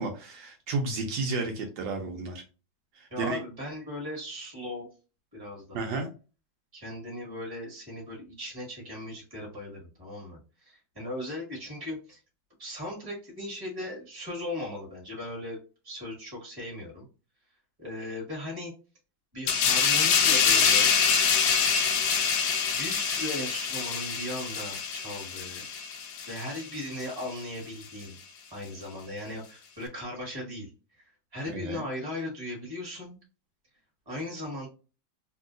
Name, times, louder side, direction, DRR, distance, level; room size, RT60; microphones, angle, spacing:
voice 1, 0.0-2.4 3.0-3.4 5.7-6.1 31.5-31.8, right 3 dB, 75° right, 3 dB, 1.3 m, -32 dB
voice 2, 3.1-4.9 5.3-6.0 6.7-12.2 12.6-15.6 15.8-17.1 17.8-18.7 19.3-20.9 22.7-25.6 26.3-28.2 28.5-30.7 31.3-33.2 34.0-34.7, left 1 dB, 15° right, -3 dB, 1.2 m, -37 dB
sound 1, 19.5-26.6 27.0-27.2, left 6 dB, 85° left, 0.7 m, -25 dB
3.0 x 2.7 x 2.5 m, 0.33 s
omnidirectional pair, 2.1 m